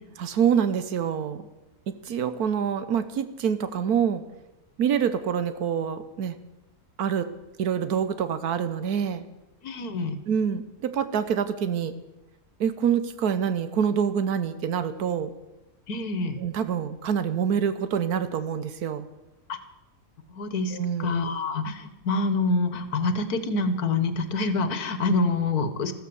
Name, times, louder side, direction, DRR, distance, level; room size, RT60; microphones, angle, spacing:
voice 1, 0.2-1.5 1.9-4.2 4.8-6.4 7.0-7.3 7.6-9.3 10.3-11.9 12.6-15.3 16.4-19.1 20.7-21.1, right 8 dB, 90° right, 11 dB, 1.5 m, -26 dB
voice 2, 9.6-10.1 15.9-16.4 19.5-19.6 20.3-25.9, left 3 dB, 90° left, 11 dB, 1.8 m, -26 dB
14.0 x 14.0 x 7.0 m, 0.99 s
omnidirectional pair, 1.6 m